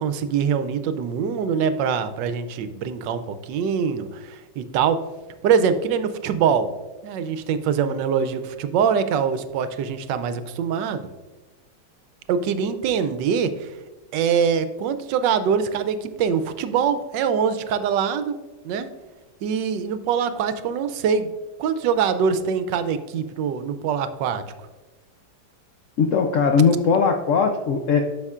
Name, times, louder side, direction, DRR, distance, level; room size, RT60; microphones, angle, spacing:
voice 1, 0.0-5.0 5.4-6.7 7.0-11.0 12.3-13.7 14.1-18.4 18.6-18.9 19.4-21.3 21.6-24.4, right 7 dB, 80° right, 11 dB, 1.2 m, -23 dB
voice 2, 26.0-28.0, left 5 dB, 75° left, 4 dB, 0.7 m, -19 dB
9.7 x 6.6 x 2.4 m, 1.2 s
omnidirectional pair, 1.9 m